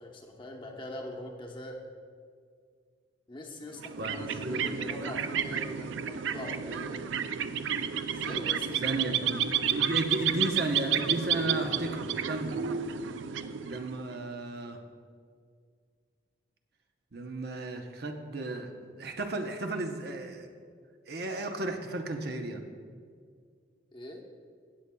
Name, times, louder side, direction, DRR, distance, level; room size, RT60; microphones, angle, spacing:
voice 1, 0.0-1.8 3.3-7.0 8.1-9.2 23.9-24.2, left 1 dB, 25° left, 0 dB, 1.0 m, -42 dB
sound 1, 3.7-14.1, right 8 dB, 80° right, 0.4 m, -31 dB
voice 2, 4.0-4.6 8.8-12.6 13.6-14.8 17.1-20.5 21.1-22.6, right 2 dB, 55° right, 4 dB, 0.8 m, -34 dB
17.0 x 8.2 x 2.3 m, 2.1 s
head